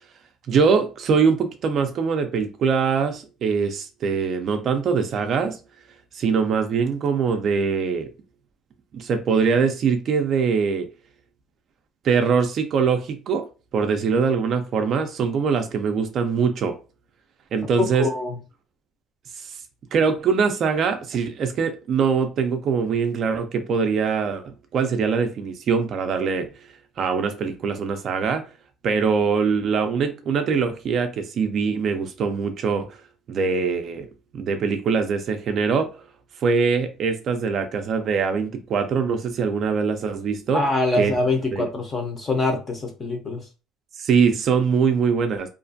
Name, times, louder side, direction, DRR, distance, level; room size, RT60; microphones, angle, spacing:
voice 1, 0.5-5.6 6.1-8.1 8.9-10.9 12.0-13.5 13.7-16.8 17.5-18.1 19.9-26.5 27.0-28.4 28.8-32.9 33.3-34.1 34.3-35.9 36.4-40.6 41.0-41.1 41.5-41.7 44.0-45.5, right 5 dB, 40° right, 0.3 m, -22 dB
voice 2, 17.8-18.4 40.5-43.4, left 2 dB, 25° left, 0.6 m, -24 dB
2.4 x 2.2 x 2.5 m
cardioid pair, 160°, 0 cm